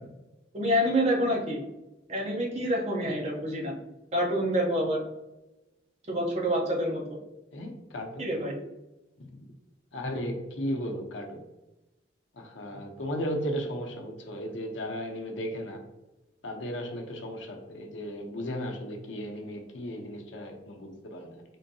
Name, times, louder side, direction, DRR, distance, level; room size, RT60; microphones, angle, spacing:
voice 1, 0.5-1.6 2.1-3.7 4.1-5.0 6.1-7.2 8.2-8.6, equal, 35° right, -1 dB, 0.7 m, -27 dB
voice 2, 7.5-8.2 9.2-9.4 9.9-11.4 12.3-15.8 16.4-21.4, equal, 90° left, 3 dB, 0.7 m, -35 dB
3.7 x 2.7 x 2.6 m, 0.97 s
head